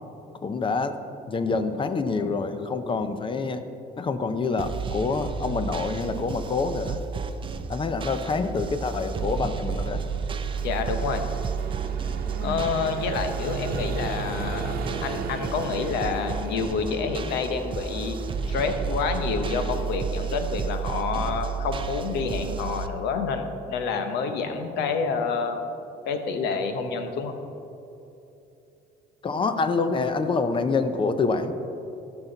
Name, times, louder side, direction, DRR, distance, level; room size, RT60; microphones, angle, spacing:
voice 1, 0.4-1.0 1.3-3.6 4.0-7.0 7.7-10.0 12.4-12.7 29.2-31.5, left 4 dB, 30° left, 10 dB, 0.6 m, -26 dB
sound 1, 4.6-22.9, right 5 dB, 30° right, 0.5 m, -32 dB
Vehicle, 8.3-22.4, right 4 dB, 60° right, 0.9 m, -38 dB
voice 2, 10.6-11.2 12.4-14.7 15.0-18.2 18.5-25.6 26.0-27.3, left 5 dB, 85° left, 7 dB, 0.9 m, -28 dB
15.0 x 5.8 x 3.9 m, 2.9 s
cardioid pair, 110°, 17 cm